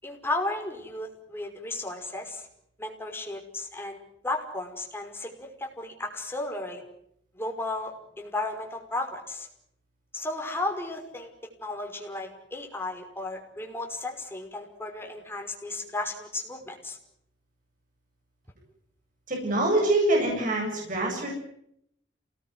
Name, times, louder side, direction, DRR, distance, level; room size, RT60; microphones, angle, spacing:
voice 1, 0.0-2.5 2.8-4.0 4.2-6.8 7.3-9.5 10.1-11.3 11.6-17.0, left 2 dB, 15° left, 2 dB, 5.5 m, -34 dB
voice 2, 19.3-21.3, right 1 dB, 50° right, 0 dB, 8.0 m, -25 dB
28.0 x 19.5 x 9.6 m, 0.74 s
head